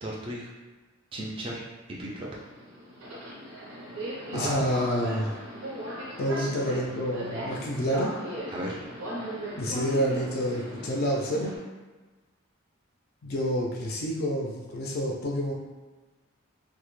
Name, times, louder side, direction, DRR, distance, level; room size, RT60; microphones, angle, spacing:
voice 1, 0.0-0.5 1.1-1.6 2.0-2.3 4.3-4.7 6.4-6.5 8.5-8.8, right 1 dB, 25° right, -4 dB, 0.3 m, -35 dB
Subway metro underground, 2.0-11.6, equal, 90° right, 0.6 m, -38 dB
voice 2, 4.3-5.4 6.2-8.2 9.6-11.6 13.2-15.5, equal, 50° left, -2 dB, 0.4 m, -28 dB
2.1 x 2.0 x 3.0 m, 1.3 s
head